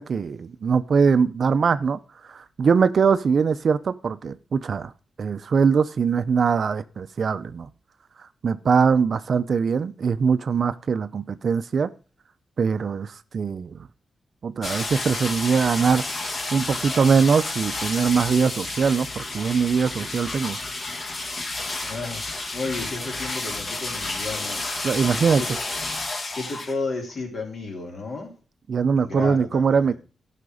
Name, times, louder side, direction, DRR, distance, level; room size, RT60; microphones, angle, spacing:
voice 1, 0.0-2.0 2.3-4.9 5.2-7.7 8.4-11.9 12.6-13.9 14.4-16.0 16.5-20.6 24.8-25.4 28.7-29.9, right 5 dB, 50° right, 0.6 m, -22 dB
sound 1, 14.6-26.8 27.1-27.2, left 2 dB, 35° left, 1.6 m, -31 dB
voice 2, 21.9-24.7 25.4-25.5 26.3-28.3 28.9-30.0, left 3 dB, 50° left, 4.0 m, -33 dB
15.0 x 5.9 x 4.9 m
wide cardioid pair, 150°, 0 cm